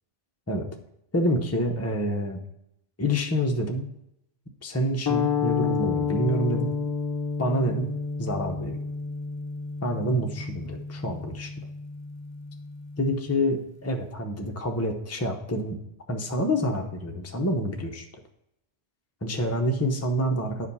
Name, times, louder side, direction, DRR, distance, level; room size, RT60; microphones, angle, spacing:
voice 1, 1.1-2.4 3.0-3.9 4.6-6.7 7.4-7.9 8.2-8.8 9.8-11.5 13.0-15.8 16.1-18.0 19.2-20.7, equal, 15° left, 2 dB, 0.8 m, -27 dB
sound 1, 5.1-13.4, left 5 dB, 40° left, 0.3 m, -30 dB
9.8 x 5.0 x 5.5 m, 0.81 s
omnidirectional pair, 1.2 m